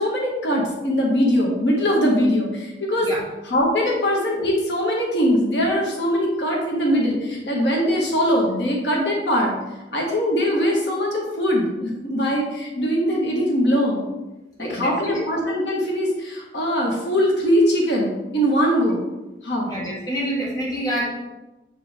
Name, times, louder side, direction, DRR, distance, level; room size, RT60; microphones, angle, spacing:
voice 1, 0.0-3.1 3.5-9.6 9.9-14.1 14.6-19.0 19.4-19.7, equal, 80° left, -2 dB, 1.6 m, -21 dB
voice 2, 14.6-15.3 19.7-21.1, equal, 20° left, -5 dB, 1.8 m, -27 dB
7.7 x 4.6 x 3.6 m, 1.0 s
head